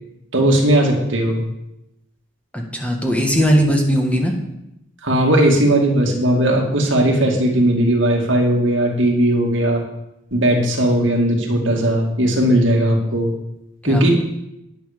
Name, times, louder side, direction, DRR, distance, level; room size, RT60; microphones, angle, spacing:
voice 1, 0.3-1.4 5.0-9.8 10.3-13.3 13.8-14.1, right 1 dB, 70° right, 1 dB, 2.3 m, -17 dB
voice 2, 2.5-4.3 13.8-14.1, equal, 5° left, 1 dB, 1.6 m, -18 dB
10.0 x 9.7 x 5.2 m, 0.86 s
head